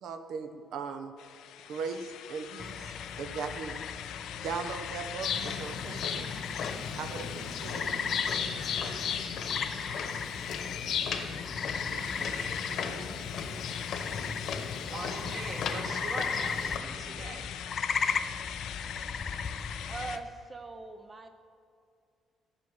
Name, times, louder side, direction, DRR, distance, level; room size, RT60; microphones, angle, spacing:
voice 1, 0.0-1.1 1.7-3.8 4.4-6.3 6.9-8.0 11.9-12.3, right 5 dB, 65° right, 8 dB, 1.0 m, -39 dB
sound 1, 1.2-20.2, left 10 dB, 75° left, 0.6 m, -42 dB
sound 2, 2.6-20.2, left 5 dB, 30° left, 0.5 m, -37 dB
sound 3, 5.2-16.8, left 6 dB, 55° left, 1.2 m, -36 dB
voice 2, 12.1-13.1 14.9-17.4, right 3 dB, 45° right, 1 dB, 2.1 m, -42 dB
voice 3, 19.9-21.3, right 3 dB, 15° right, 8 dB, 0.9 m, -41 dB
14.5 x 6.1 x 7.9 m, 2.4 s
cardioid pair, 155°, 0 cm